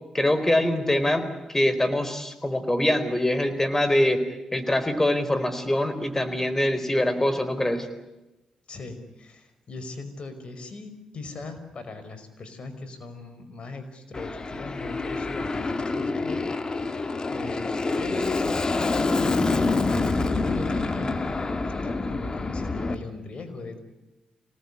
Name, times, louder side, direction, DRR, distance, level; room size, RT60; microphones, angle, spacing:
voice 1, 0.1-4.2 4.5-7.9, left 1 dB, 20° left, 11 dB, 4.4 m, -24 dB
voice 2, 8.7-16.4 17.3-19.1 19.4-20.1 20.5-21.3 21.6-23.8, left 3 dB, 55° left, 9 dB, 5.3 m, -39 dB
Aircraft, 14.1-23.0, left 3 dB, 40° left, 2.0 m, -27 dB
26.0 x 19.0 x 9.8 m, 1.0 s
supercardioid pair, 55°, 2 cm